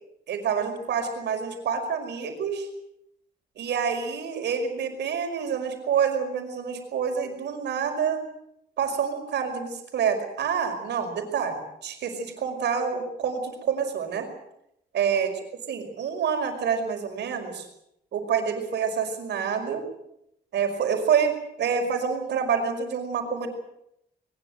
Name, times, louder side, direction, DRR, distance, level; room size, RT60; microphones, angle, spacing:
voice 1, 0.3-2.7 3.6-8.2 8.8-14.3 14.9-15.3 15.7-17.7 18.1-19.8 20.5-23.5, right 7 dB, 75° right, 5 dB, 5.3 m, -27 dB
21.5 x 21.0 x 8.0 m, 0.78 s
wide cardioid pair, 175°, 18 cm